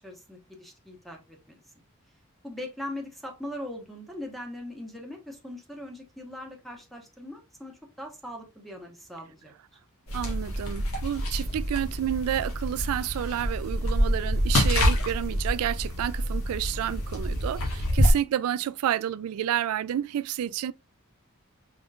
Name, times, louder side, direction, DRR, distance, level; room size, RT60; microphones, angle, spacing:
voice 1, 0.0-1.6 2.4-9.5, left 1 dB, ahead, 1.1 m, -40 dB
sound 1, 10.1-18.1, equal, 90° left, 1.5 m, -27 dB
voice 2, 10.1-20.7, right 11 dB, 85° right, 0.3 m, -30 dB
4.8 x 3.5 x 2.4 m
head